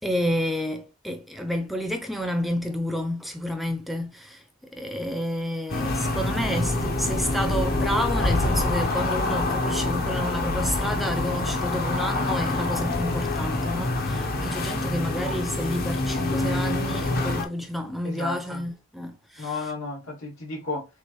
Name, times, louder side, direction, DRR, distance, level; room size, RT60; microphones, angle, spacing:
voice 1, 0.0-19.6, equal, ahead, 0.5 m, -30 dB
sound 1, 5.7-17.4, left 2 dB, 45° left, 0.7 m, -26 dB
voice 2, 18.0-18.6 19.4-20.9, left 3 dB, 80° left, 2.2 m, -33 dB
6.5 x 2.5 x 3.0 m
head